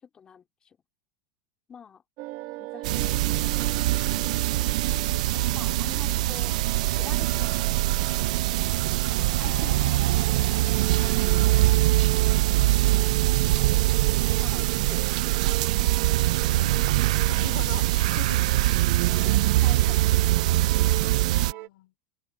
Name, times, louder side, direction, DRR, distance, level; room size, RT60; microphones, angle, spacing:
voice 1, 0.1-0.8 1.7-2.0 2.6-4.1 4.4-6.5 6.9-7.7 8.0-9.0 9.4-9.8 10.3-11.9 13.8-16.1 16.6-16.7 17.8-17.9 19.2-21.3, left 7 dB, 20° left, 3.8 m, -48 dB
sound 1, 2.2-21.7, right 20 dB, 50° right, 1.8 m, -39 dB
sound 2, 2.8-21.5, right 16 dB, 70° right, 0.6 m, -23 dB
voice 2, 4.6-5.2 9.4-10.3 16.4-18.9 21.3-21.9, left 17 dB, 65° left, 4.6 m, -44 dB
supercardioid pair, 140°, 4 cm